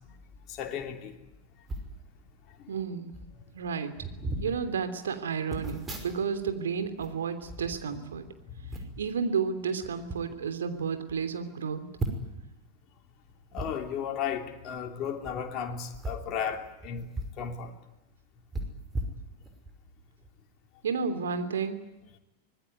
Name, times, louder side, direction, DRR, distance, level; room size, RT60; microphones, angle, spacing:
voice 1, 0.5-1.2 2.6-2.7 8.5-8.8 13.5-17.1 17.4-17.7, left 7 dB, 35° left, 3.1 m, -35 dB
sound 1, 1.6-1.9 2.8-2.9 3.1-3.4 3.9-4.5 5.5-6.5 6.8-8.2 8.7-9.1 9.8-10.2 10.7-10.8 11.1-11.2 12.0-12.4 13.5-13.7 15.1-15.3 15.9-17.4 17.7-17.8 18.5-19.7 20.2-20.4, right 2 dB, 15° right, 5.5 m, -37 dB
voice 2, 2.7-3.1 3.5-3.9 4.4-8.3 9.0-11.9 20.8-21.8, right 6 dB, 65° right, 3.1 m, -31 dB
25.0 x 20.5 x 9.7 m
figure-of-eight pair, 90°, 0 cm